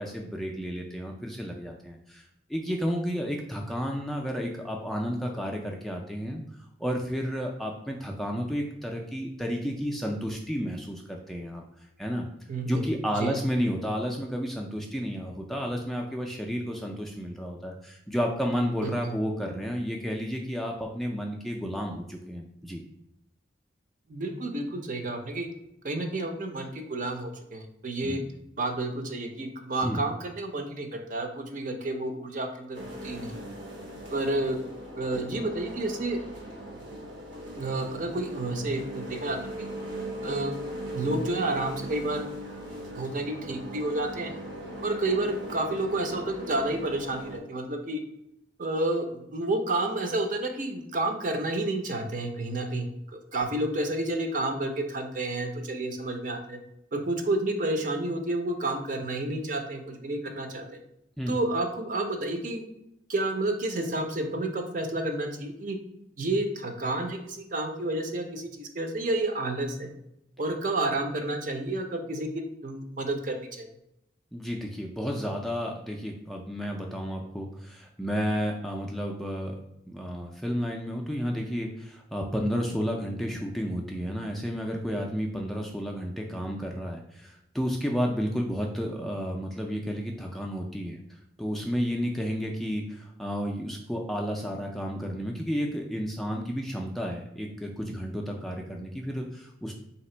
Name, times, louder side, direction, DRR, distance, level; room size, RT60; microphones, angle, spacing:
voice 1, 0.0-2.2 2.5-6.4 6.8-11.6 12.0-12.2 12.7-22.8 28.0-28.2 29.8-30.0 61.2-61.3 74.3-79.6 79.9-91.0 91.4-99.7, equal, ahead, 0 dB, 0.3 m, -31 dB
voice 2, 12.5-13.3 18.8-19.1 24.1-25.5 25.8-28.2 28.6-33.3 34.1-34.6 35.0-36.2 37.6-39.7 40.2-40.6 40.9-42.2 42.9-44.3 44.8-48.0 48.6-56.6 56.9-60.8 61.3-62.6 63.1-65.8 66.2-69.9 70.4-73.7, right 2 dB, 45° right, 5 dB, 0.6 m, -30 dB
sound 1, 32.7-47.4, right 1 dB, 70° right, 0.9 m, -39 dB
3.3 x 2.8 x 4.3 m, 0.82 s
head